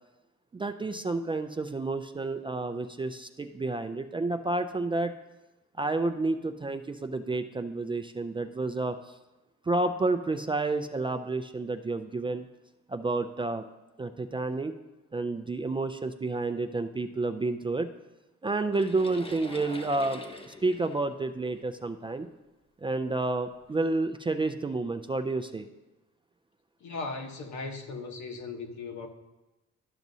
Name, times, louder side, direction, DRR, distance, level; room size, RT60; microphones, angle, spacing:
voice 1, 0.5-5.1 5.8-9.0 9.7-12.4 12.9-13.7 14.0-14.7 15.1-17.9 18.4-22.3 22.8-25.7, right 2 dB, 15° right, 0.3 m, -30 dB
sound 1, 18.7-22.1 22.9-23.0 23.6-23.8, left 2 dB, 20° left, 0.8 m, -45 dB
voice 2, 26.8-29.1, left 3 dB, 70° left, 1.1 m, -37 dB
12.0 x 6.0 x 2.7 m
cardioid pair, 90°, 30 cm